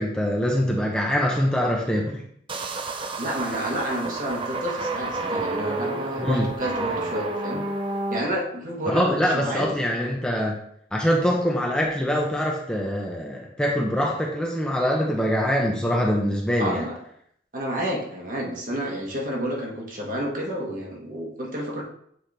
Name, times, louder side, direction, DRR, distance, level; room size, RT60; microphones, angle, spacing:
voice 1, 0.0-2.2 6.2-6.5 8.9-10.6 10.9-16.9, equal, 5° left, -2 dB, 0.8 m, -24 dB
sound 1, 2.5-8.2, right 2 dB, 30° right, 0.5 m, -30 dB
voice 2, 3.2-7.6 8.1-9.7 16.6-17.0 17.5-21.8, equal, 50° right, -1 dB, 1.5 m, -30 dB
7.7 x 4.4 x 3.4 m, 0.68 s
head